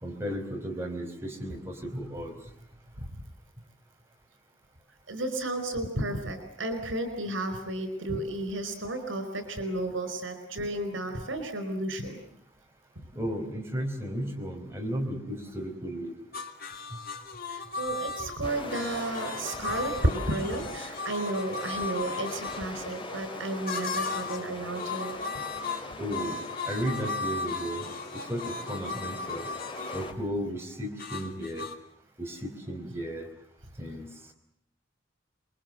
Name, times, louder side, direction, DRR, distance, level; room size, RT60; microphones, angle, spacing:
voice 1, 0.0-2.3 13.1-16.1 26.0-26.4 26.7-27.8 28.1-29.4 29.9-31.7 32.2-33.3 33.8-34.1, equal, 15° right, 2 dB, 4.9 m, -34 dB
voice 2, 5.1-12.2 17.5-25.2, right 1 dB, 90° right, 8 dB, 4.8 m, -32 dB
sound 1, 16.3-22.6 23.7-24.5 24.7-30.1 31.0-31.8, left 4 dB, 50° left, 2.7 m, -36 dB
sound 2, 18.4-30.1, left 2 dB, 25° left, 2.4 m, -42 dB
27.5 x 22.5 x 7.9 m, 0.68 s
head